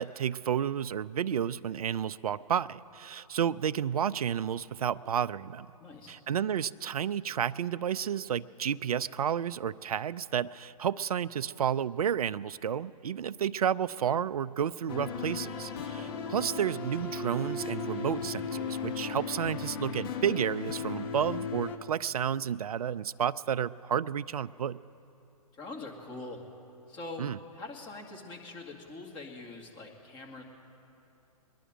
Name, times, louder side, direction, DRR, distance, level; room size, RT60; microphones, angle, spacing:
voice 1, 0.0-5.7 6.1-16.0 16.3-24.8 27.2-27.4, right 8 dB, 70° right, 16 dB, 0.5 m, -31 dB
voice 2, 5.8-6.2 15.8-16.1 25.5-26.4 26.9-27.2 27.5-30.4, left 3 dB, 25° left, 1 dB, 2.1 m, -43 dB
sound 1, 14.9-21.8, left 5 dB, 40° left, 1.1 m, -36 dB
22.0 x 11.0 x 5.1 m, 2.9 s
hypercardioid pair, 130°, 20 cm